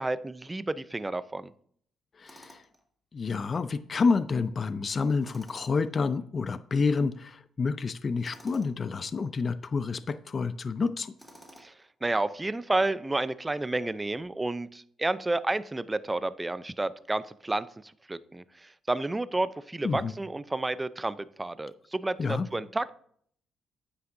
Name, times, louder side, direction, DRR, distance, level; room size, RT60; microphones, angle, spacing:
voice 1, 0.0-1.5 11.6-11.7 12.0-17.7 18.1-22.9, right 2 dB, 15° right, 15 dB, 0.5 m, -31 dB
voice 2, 2.2-2.6 3.1-11.1 19.8-20.1 22.2-22.5, left 4 dB, 40° left, 13 dB, 0.5 m, -29 dB
Tools, 2.3-2.8 5.2-5.9 8.2-8.8 11.2-11.9, equal, ahead, 1.7 m, -52 dB
9.6 x 8.6 x 2.6 m, 0.62 s
cardioid pair, 90°, 0 cm